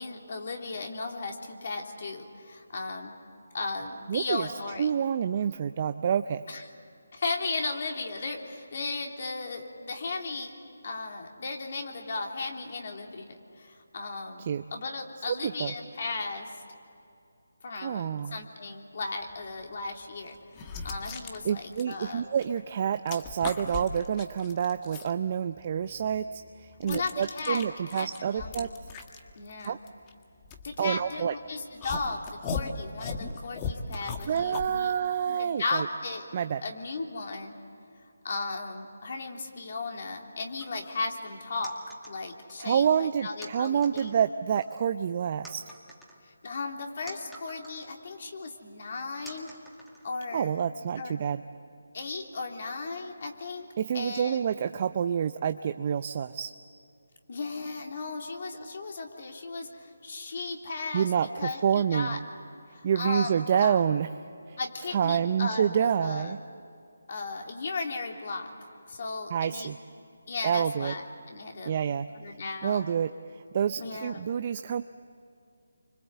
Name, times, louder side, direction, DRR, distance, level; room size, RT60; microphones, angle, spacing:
voice 1, 0.0-3.1 3.5-4.9 6.5-6.6 7.1-10.5 10.8-16.5 17.6-20.4 20.8-22.3 26.8-27.6 27.9-28.6 29.3-29.8 30.6-34.9 35.3-36.2 36.6-37.5 38.2-41.7 42.1-44.1 46.2-49.5 50.0-50.5 51.0-51.1 51.9-53.7 53.9-54.5 57.3-61.1 61.4-62.2 62.7-63.8 64.6-66.3 67.1-68.5 68.9-69.7 70.3-71.7 72.1-72.9 73.8-74.2, left 3 dB, 50° left, 2 dB, 3.5 m, -36 dB
voice 2, 4.1-4.5 4.8-6.4 14.5-14.6 15.4-15.7 17.8-18.4 21.4-28.7 29.7-29.8 30.8-31.3 34.3-35.9 36.3-36.6 42.6-45.6 50.3-51.4 53.8-56.5 60.9-62.3 62.8-64.1 64.5-64.6 64.9-66.4 69.3-69.8 70.4-70.9 71.7-72.1 72.6-74.8, right 8 dB, 35° right, 10 dB, 0.6 m, -28 dB
sound 1, 19.5-19.6 20.3-22.6 22.9-25.1 25.6-31.2 31.8-34.7, left 5 dB, 20° left, 1.6 m, -38 dB
sound 2, 40.6-41.0 41.6-42.8 43.4-44.2 44.6-45.1 45.4-48.0 48.4-48.5 49.3-50.4, right 1 dB, ahead, 2.4 m, -50 dB
29.0 x 25.5 x 8.2 m, 2.6 s
figure-of-eight pair, 155°, 0 cm